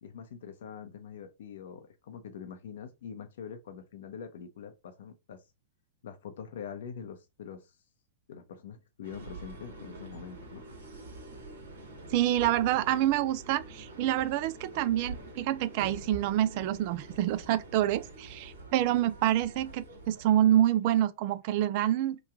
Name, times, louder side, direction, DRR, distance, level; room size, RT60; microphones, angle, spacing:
voice 1, 0.0-5.4 6.0-7.8 8.3-10.6, left 7 dB, 70° left, 0.6 m, -44 dB
sound 1, 9.0-20.3, right 2 dB, 75° right, 1.3 m, -46 dB
voice 2, 12.1-22.2, right 12 dB, 50° right, 0.3 m, -27 dB
3.0 x 2.3 x 3.4 m
hypercardioid pair, 115°, 0 cm